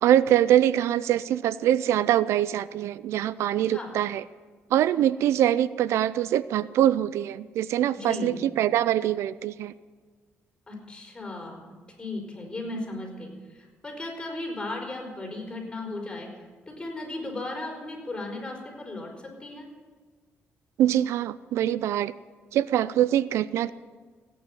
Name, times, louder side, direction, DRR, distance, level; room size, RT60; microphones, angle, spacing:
voice 1, 0.0-4.2 4.7-9.7 20.8-22.1 22.5-23.7, right 11 dB, 85° right, 17 dB, 0.4 m, -23 dB
voice 2, 7.9-8.4 10.7-16.3 16.7-19.7, left 2 dB, 15° left, 0 dB, 4.9 m, -36 dB
17.0 x 9.3 x 7.9 m, 1.5 s
cardioid pair, 110°, 5 cm